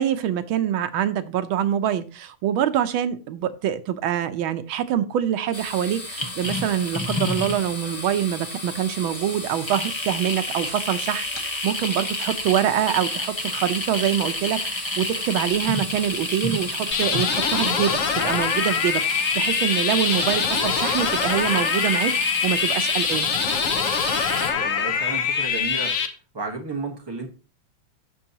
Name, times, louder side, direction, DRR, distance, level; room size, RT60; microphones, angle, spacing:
voice 1, 0.0-23.3, right 10 dB, 90° right, 9 dB, 1.6 m, -25 dB
sound 1, 5.5-24.5, left 2 dB, 15° left, 1.1 m, -30 dB
sound 2, 16.9-26.1, left 6 dB, 55° left, 1.0 m, -24 dB
voice 2, 24.5-26.0 26.3-27.3, right 3 dB, 15° right, 3 dB, 1.1 m, -32 dB
15.0 x 5.5 x 2.9 m, 0.32 s
omnidirectional pair, 2.2 m